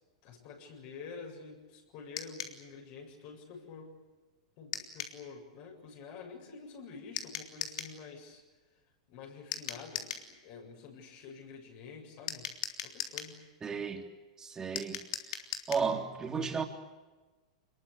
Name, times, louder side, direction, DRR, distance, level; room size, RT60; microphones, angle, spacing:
voice 1, 0.2-3.9 4.6-8.4 9.1-12.5 12.8-13.4, left 5 dB, 50° left, 7.6 m, -48 dB
sound 1, 2.2-2.6 4.7-5.2 7.2-8.0 9.5-10.3 12.3-13.3 14.8-15.9, left 9 dB, 65° left, 3.5 m, -39 dB
voice 2, 13.6-14.1 14.4-15.0 15.7-16.6, right 5 dB, 15° right, 3.5 m, -33 dB
26.0 x 22.0 x 8.6 m
hypercardioid pair, 125°, 3 cm